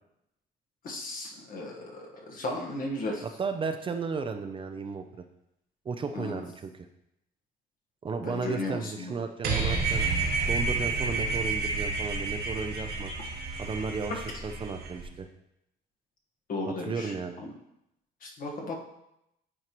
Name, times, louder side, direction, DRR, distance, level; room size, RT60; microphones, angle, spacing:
voice 1, 0.8-3.2 6.1-6.4 8.2-9.1 16.5-17.5 18.2-18.8, left 2 dB, 55° left, 0 dB, 1.5 m, -35 dB
voice 2, 3.2-5.0 5.8-6.7 8.0-10.0 10.5-13.1 13.6-15.3 16.8-17.4, right 4 dB, 30° right, 7 dB, 0.5 m, -34 dB
sound 1, 9.4-15.0, right 3 dB, 65° right, 1.2 m, -30 dB
8.8 x 4.5 x 3.0 m, 0.83 s
cardioid pair, 110°, 17 cm